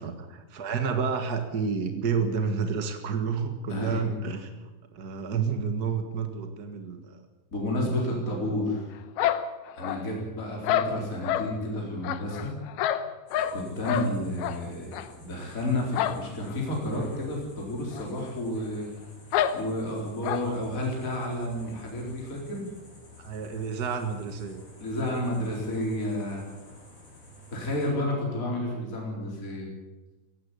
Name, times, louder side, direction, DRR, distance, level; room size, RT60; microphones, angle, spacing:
voice 1, 0.0-4.5 4.9-7.2 7.8-8.6 10.1-10.2 20.4-20.6 23.2-24.6, right 6 dB, 55° right, 6 dB, 1.0 m, -30 dB
voice 2, 3.7-4.1 7.5-8.9 9.8-12.5 13.5-18.9 19.5-22.7 24.8-26.4 27.5-29.7, left 1 dB, 20° left, -1 dB, 4.6 m, -31 dB
sound 1, 9.2-10.2 10.6-11.5 12.0-13.6 13.9-14.1 14.4-14.6 14.9-15.1 15.9-16.2 16.5-16.6 17.0-17.1 17.9-18.0 18.3-18.4 19.3-19.6 20.2-20.5, left 10 dB, 90° left, 3.0 m, -27 dB
sound 2, 13.3-27.9, left 2 dB, 45° left, 7.2 m, -52 dB
17.5 x 16.0 x 10.0 m, 1.2 s
omnidirectional pair, 4.2 m